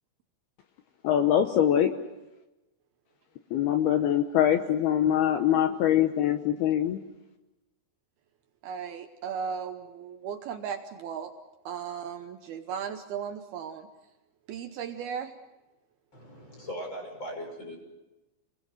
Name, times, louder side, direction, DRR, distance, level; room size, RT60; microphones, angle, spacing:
voice 1, 1.0-1.9 3.5-7.0, left 10 dB, 75° left, 7 dB, 2.3 m, -23 dB
voice 2, 8.6-11.3 11.7-13.9 14.5-15.4, right 7 dB, 75° right, 6 dB, 2.3 m, -36 dB
voice 3, 16.1-17.8, equal, 25° left, 2 dB, 6.4 m, -39 dB
29.0 x 21.5 x 6.4 m, 1.0 s
omnidirectional pair, 5.7 m